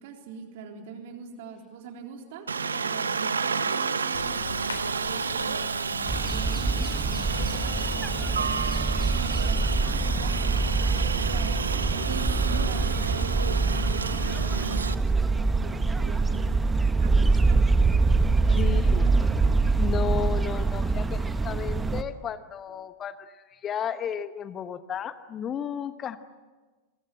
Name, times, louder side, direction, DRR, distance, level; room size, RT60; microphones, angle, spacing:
voice 1, 0.0-4.4 4.9-8.7 9.1-11.6 12.1-16.5 17.0-17.9 18.4-19.5, right 5 dB, 50° right, 3 dB, 3.9 m, -42 dB
Aircraft, 2.5-14.9, right 5 dB, 75° right, 1.2 m, -30 dB
sound 1, 4.1-14.2, left 4 dB, 75° left, 3.4 m, -40 dB
sound 2, 6.1-22.0, right 3 dB, 10° right, 1.3 m, -24 dB
voice 2, 18.5-19.1 19.8-26.2, left 8 dB, 25° left, 12 dB, 1.1 m, -33 dB
28.0 x 23.5 x 7.8 m, 1.3 s
figure-of-eight pair, 90°, 0 cm